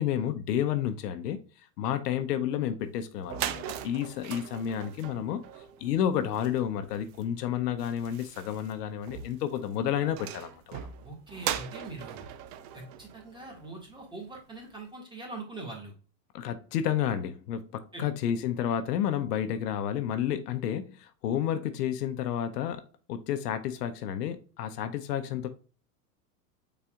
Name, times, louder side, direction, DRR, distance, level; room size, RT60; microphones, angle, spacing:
voice 1, 0.0-1.4 1.8-5.4 5.8-10.9 16.3-25.5, left 10 dB, 75° left, 0.8 m, -31 dB
sound 1, 2.9-3.0 3.2-14.0, right 10 dB, 35° right, 0.4 m, -40 dB
voice 2, 11.0-12.3 12.7-15.9 17.9-18.0, right 2 dB, 10° right, 1.7 m, -42 dB
5.5 x 4.1 x 2.3 m
supercardioid pair, 125°, 48 cm